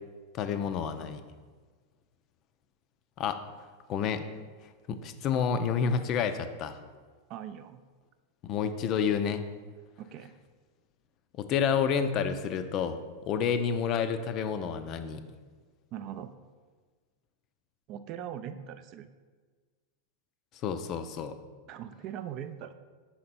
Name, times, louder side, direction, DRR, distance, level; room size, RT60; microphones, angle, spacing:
voice 1, 0.3-1.2 3.2-3.4 3.9-4.3 4.9-6.8 8.4-9.4 11.3-13.0 13.3-15.2 20.6-21.4, left 7 dB, 40° left, 10 dB, 0.4 m, -29 dB
voice 2, 7.3-7.8 10.0-10.3 15.9-16.3 17.9-19.1 21.7-22.7, right 10 dB, 40° right, 10 dB, 0.3 m, -41 dB
5.7 x 4.3 x 4.1 m, 1.5 s
figure-of-eight pair, 90°, 0 cm